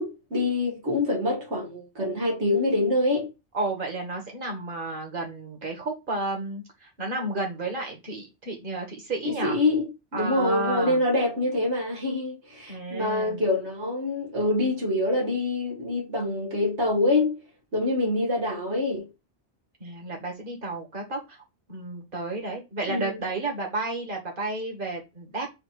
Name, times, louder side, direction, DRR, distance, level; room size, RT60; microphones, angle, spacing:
voice 1, 0.0-3.3 9.2-17.4 17.7-19.1 22.9-23.2, left 2 dB, 80° right, 2.2 m, -25 dB
voice 2, 3.5-9.6 10.1-11.0 12.7-13.4 19.8-21.4 21.7-25.5, right 2 dB, 50° right, 2.2 m, -32 dB
7.3 x 3.0 x 5.3 m
omnidirectional pair, 1.1 m